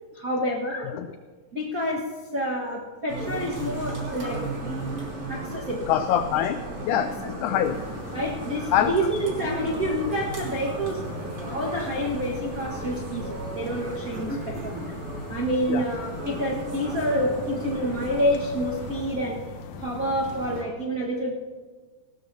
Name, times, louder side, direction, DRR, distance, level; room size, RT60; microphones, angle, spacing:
voice 1, 0.1-0.9 1.5-4.4 5.3-5.9 7.0-7.1 7.5-7.6 8.1-11.0 11.4-14.9 15.3-19.4 19.8-21.3, equal, 60° right, -4 dB, 0.9 m, -28 dB
sound 1, 3.1-19.0, right 2 dB, 40° right, 4.1 m, -35 dB
voice 2, 5.9-6.6 6.8-7.8 8.7-8.9 15.7-15.8, left 10 dB, 85° left, 9 dB, 1.8 m, -24 dB
sound 2, 7.6-20.6, left 4 dB, 70° left, 1.8 m, -41 dB
19.0 x 18.5 x 2.7 m, 1.4 s
omnidirectional pair, 4.2 m